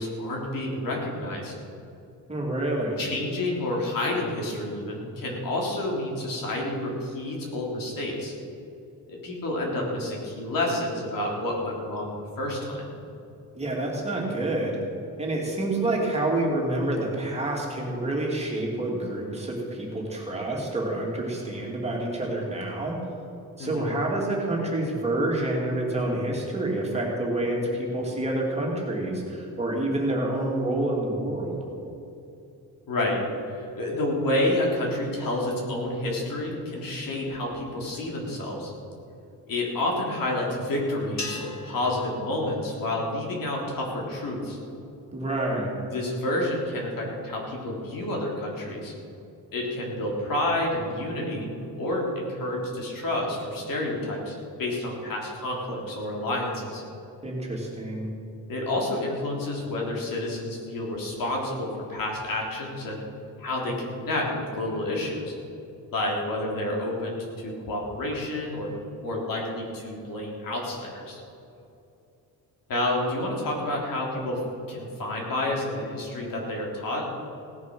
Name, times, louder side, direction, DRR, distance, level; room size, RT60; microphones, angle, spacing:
voice 1, 0.0-1.5 3.0-8.3 9.1-12.9 23.6-23.9 32.9-33.2 33.5-38.7 39.5-44.6 45.9-48.9 49.5-51.5 51.8-56.8 58.5-63.0 63.4-65.3 65.9-68.7 69.0-71.2 72.7-74.4 74.7-77.1, left 1 dB, 65° left, -2 dB, 3.7 m, -29 dB
voice 2, 2.3-3.0 13.5-14.8 15.2-23.0 23.6-31.7 45.1-45.7 57.2-58.1, right 1 dB, 15° right, -3 dB, 2.7 m, -28 dB
sound 1, 41.2-43.6, left 3 dB, 50° left, 2.2 m, -40 dB
17.5 x 10.5 x 6.2 m, 2.8 s
wide cardioid pair, 175°, 36 cm